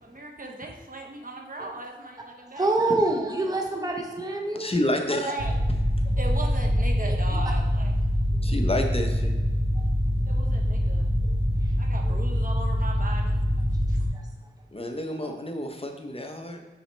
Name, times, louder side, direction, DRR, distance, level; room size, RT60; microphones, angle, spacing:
voice 1, 0.0-2.8 5.2-5.6 6.2-7.9 10.3-11.1 11.8-13.4 13.9-14.0, right 2 dB, 45° right, 0 dB, 1.1 m, -37 dB
voice 2, 2.5-4.7 7.1-7.2 8.3-8.4 11.2-11.3 11.6-11.7 14.1-14.3 15.2-15.4, right 2 dB, 20° right, 1 dB, 0.8 m, -27 dB
voice 3, 4.5-5.3 8.4-9.3 14.7-16.6, left 1 dB, 30° left, 4 dB, 0.7 m, -29 dB
sound 1, 5.4-14.1, equal, 85° right, 1.2 m, -24 dB
6.0 x 5.0 x 3.2 m, 1.3 s
wide cardioid pair, 70°, 20 cm